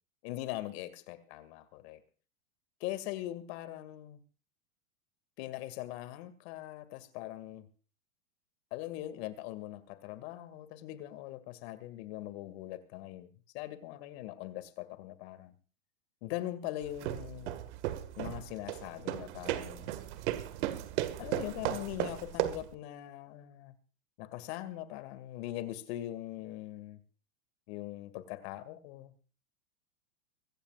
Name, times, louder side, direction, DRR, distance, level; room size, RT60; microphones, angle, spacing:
voice 1, 0.2-2.0 2.8-4.2 5.4-7.7 8.7-13.3 13.5-15.5 16.2-17.5 18.2-20.0 21.2-23.8 24.2-27.0 27.7-29.1, left 14 dB, 50° left, 2.3 m, -41 dB
sound 1, 16.8-22.7, right 13 dB, 60° right, 1.9 m, -36 dB
24.5 x 14.5 x 2.5 m
hypercardioid pair, 115°, 40 cm